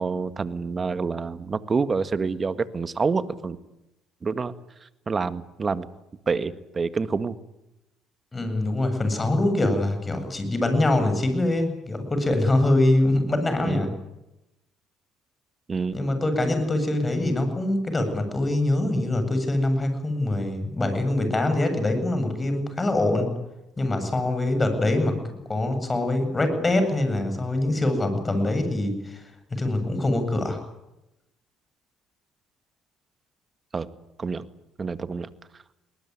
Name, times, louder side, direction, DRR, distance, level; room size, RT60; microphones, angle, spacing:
voice 1, 0.0-3.6 4.2-4.5 4.8-5.9 6.2-7.4 13.6-13.8 15.7-16.0 33.7-33.9 34.2-34.4 34.8-35.3, right 4 dB, 35° right, 13 dB, 1.8 m, -27 dB
voice 2, 8.3-13.9 15.9-23.3 23.8-25.2 25.5-29.2 29.5-30.6, left 1 dB, 25° left, 7 dB, 7.8 m, -24 dB
22.5 x 20.0 x 9.7 m, 0.92 s
hypercardioid pair, 60°, 0 cm